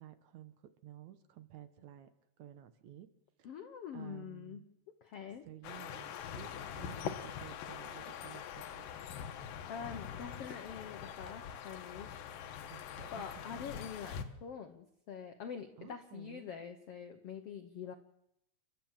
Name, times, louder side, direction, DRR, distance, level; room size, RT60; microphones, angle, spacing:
voice 1, 0.0-2.1 2.4-3.1 3.4-3.6 3.9-4.7 5.4-8.9 12.7-13.6 15.8-16.5, right 12 dB, 70° right, 11 dB, 2.1 m, -53 dB
voice 2, 3.4-4.7 5.0-5.5 9.7-12.1 13.1-17.9, left 7 dB, 60° left, 6 dB, 1.6 m, -45 dB
sound 1, 5.6-14.2, left 8 dB, 85° left, 3.0 m, -44 dB
29.5 x 12.5 x 7.5 m, 0.79 s
omnidirectional pair, 3.9 m